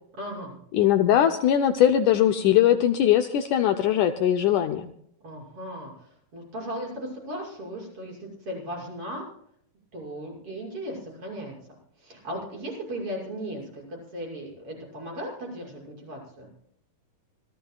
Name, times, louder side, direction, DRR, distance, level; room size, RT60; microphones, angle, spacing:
voice 1, 0.2-0.6 5.2-9.3 9.9-11.5 12.0-16.5, equal, 40° right, -2 dB, 7.6 m, -37 dB
voice 2, 0.7-4.9, left 10 dB, 75° left, 7 dB, 2.0 m, -21 dB
25.5 x 16.5 x 2.4 m, 0.67 s
omnidirectional pair, 4.0 m